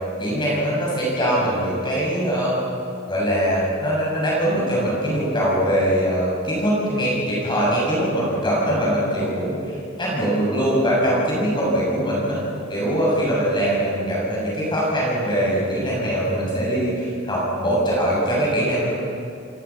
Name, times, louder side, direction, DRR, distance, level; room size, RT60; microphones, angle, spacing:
voice 1, 0.2-2.6 3.1-12.4 12.7-18.9, equal, 25° left, -5 dB, 7.1 m, -22 dB
27.5 x 21.0 x 5.9 m, 2.5 s
head